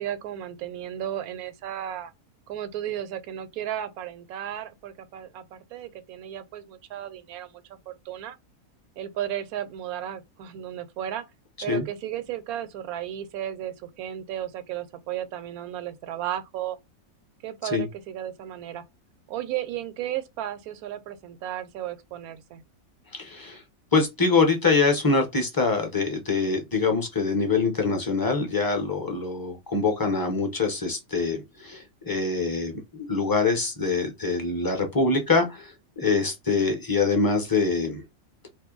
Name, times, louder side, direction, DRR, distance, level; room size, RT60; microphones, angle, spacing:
voice 1, 0.0-2.1 2.5-8.4 9.0-11.2 11.6-16.8 17.4-18.8 19.3-22.6, right 11 dB, 90° right, 1.1 m, -34 dB
voice 2, 23.1-23.6 23.9-38.0, left 4 dB, 25° left, 0.5 m, -24 dB
2.7 x 2.5 x 3.8 m
omnidirectional pair, 1.5 m